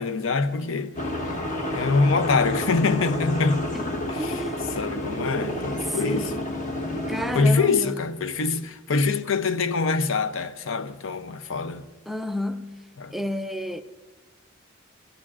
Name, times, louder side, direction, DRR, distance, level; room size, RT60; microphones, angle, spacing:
voice 1, 0.0-1.4 1.7-3.7 4.1-4.4 4.7-6.3 7.3-11.9 13.0-13.1, left 4 dB, 65° left, 0.6 m, -24 dB
sound 1, 1.0-7.4, left 1 dB, 35° left, 1.2 m, -30 dB
voice 2, 4.2-4.6 5.9-6.5 7.1-8.0 12.1-12.7 13.1-13.8, equal, ahead, 0.3 m, -31 dB
23.0 x 16.0 x 2.5 m
head